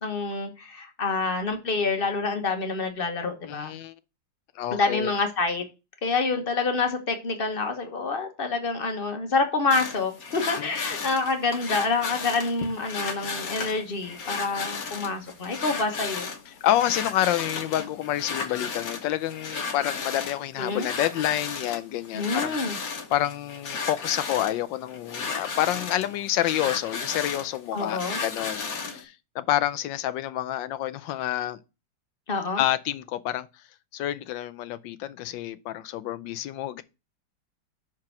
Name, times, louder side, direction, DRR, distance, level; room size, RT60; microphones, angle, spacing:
voice 1, 0.0-3.7 4.7-5.6 6.0-16.3 20.6-20.9 22.1-22.8 27.7-28.2 32.3-32.6, left 3 dB, 35° left, 1.1 m, -27 dB
voice 2, 3.4-3.9 4.6-5.1 10.6-10.7 16.6-31.6 32.6-33.5 33.9-36.8, left 13 dB, 80° left, 1.3 m, -28 dB
sound 1, 9.7-29.0, left 4 dB, 55° left, 1.4 m, -34 dB
6.0 x 4.7 x 5.8 m
omnidirectional pair, 2.0 m